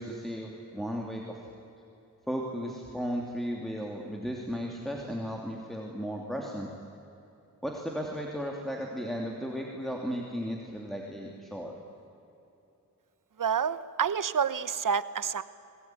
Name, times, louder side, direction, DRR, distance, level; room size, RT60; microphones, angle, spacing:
voice 1, 0.0-1.4 2.3-6.7 7.6-11.8, equal, ahead, -1 dB, 2.9 m, -35 dB
voice 2, 13.4-15.4, right 7 dB, 65° right, 15 dB, 1.0 m, -28 dB
27.5 x 21.0 x 9.4 m, 2.9 s
wide cardioid pair, 110°, 35 cm